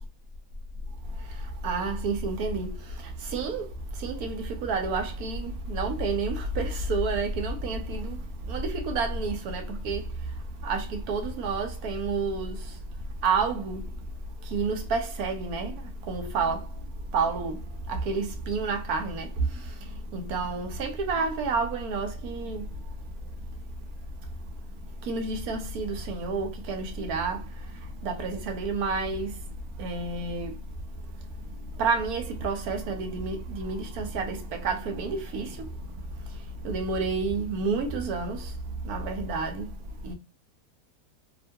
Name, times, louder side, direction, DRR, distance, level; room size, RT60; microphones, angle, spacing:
voice 1, 1.0-40.1, right 3 dB, 75° right, 1.1 m, -30 dB
3.0 x 2.1 x 2.6 m
omnidirectional pair, 1.7 m